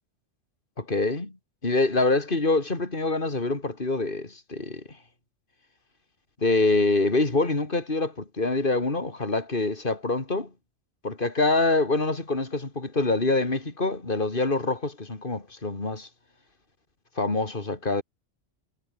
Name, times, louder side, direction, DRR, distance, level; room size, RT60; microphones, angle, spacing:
voice 1, 0.8-1.3 1.6-4.8 6.4-10.5 11.0-16.1 17.2-18.0, left 3 dB, 45° left, 3.6 m, -25 dB
omnidirectional pair, 1.2 m